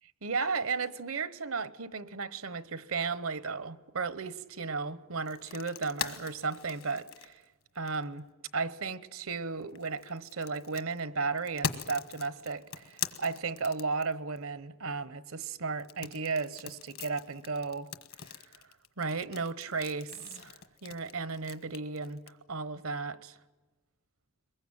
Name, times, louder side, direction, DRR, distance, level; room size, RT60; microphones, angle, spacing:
voice 1, 0.2-7.4 7.7-8.3 8.5-17.9 18.3-18.4 19.0-22.2 22.5-23.3, right 4 dB, 75° right, 1.0 m, -34 dB
sound 1, 5.2-8.2 9.6-14.4 15.8-22.3, left 7 dB, 75° left, 1.4 m, -41 dB
23.5 x 21.0 x 9.0 m
head